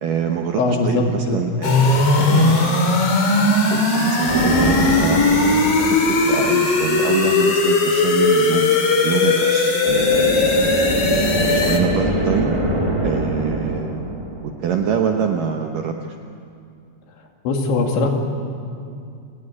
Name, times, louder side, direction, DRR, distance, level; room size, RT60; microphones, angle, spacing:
voice 1, 0.0-3.0 3.7-8.7 9.0-10.2 11.1-12.5 13.0-14.0 14.4-16.1, right 7 dB, 70° right, 3 dB, 2.1 m, -25 dB
voice 2, 0.6-1.4 17.4-18.1, left 3 dB, 75° left, 2 dB, 4.7 m, -20 dB
sound 1, 1.6-11.8, left 3 dB, 40° left, 2.9 m, -18 dB
sound 2, 4.3-7.1 9.8-15.3, right 1 dB, 45° right, 0.4 m, -24 dB
29.0 x 17.0 x 9.8 m, 2.4 s
omnidirectional pair, 5.3 m